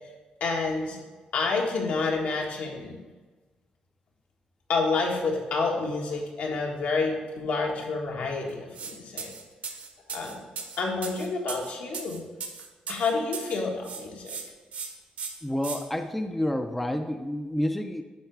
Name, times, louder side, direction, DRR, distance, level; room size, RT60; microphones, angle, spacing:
voice 1, 0.4-1.0 1.3-3.0 4.7-9.3 10.1-10.4 10.8-12.2 12.9-14.4, left 4 dB, 75° left, 0 dB, 1.6 m, -29 dB
sound 1, 8.7-8.9 9.2-13.6 13.8-14.4 14.7-14.9 15.2-15.8, right 6 dB, 65° right, 1.1 m, -37 dB
voice 2, 15.4-18.0, left 1 dB, 5° left, 6 dB, 0.4 m, -29 dB
10.5 x 3.9 x 4.6 m, 1.2 s
cardioid pair, 130°, 3 cm